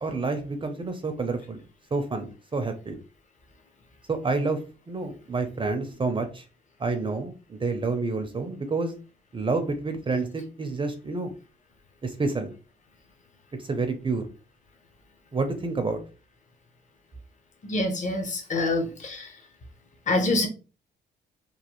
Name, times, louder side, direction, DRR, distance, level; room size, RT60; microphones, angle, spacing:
voice 1, 0.0-1.6 1.9-3.0 4.1-4.6 4.9-6.4 6.8-8.9 9.3-11.3 12.0-12.5 13.6-14.3 15.3-16.0, right 3 dB, 25° right, 0.5 m, -28 dB
voice 2, 17.6-19.3 20.1-20.5, left 2 dB, 40° left, 0.8 m, -26 dB
3.1 x 2.2 x 2.9 m
cardioid pair, 90°, 20 cm